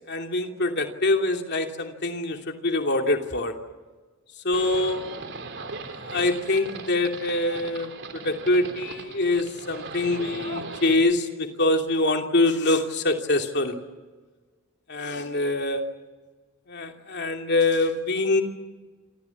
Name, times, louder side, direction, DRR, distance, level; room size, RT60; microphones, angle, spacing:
voice 1, 0.1-3.5 4.4-5.0 5.9-13.8 14.9-15.8 16.7-18.4, left 2 dB, 55° left, 4 dB, 2.8 m, -24 dB
Livestock farm animals working animals, 4.5-10.9, right 3 dB, 60° right, 3.5 m, -38 dB
28.0 x 27.5 x 7.3 m, 1.4 s
head